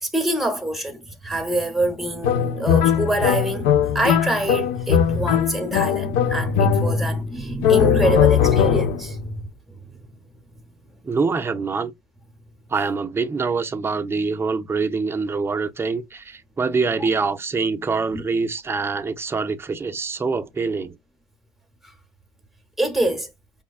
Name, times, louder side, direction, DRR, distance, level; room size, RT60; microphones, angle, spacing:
voice 1, 0.0-9.5 18.1-18.2 22.8-23.3, right 1 dB, ahead, 0.8 m, -25 dB
sound 1, 2.2-7.2 7.6-9.1, left 8 dB, 90° left, 0.5 m, -20 dB
voice 2, 11.0-11.9 12.7-21.0, right 4 dB, 15° right, 0.4 m, -25 dB
5.4 x 2.2 x 2.3 m
cardioid pair, 120°, 14 cm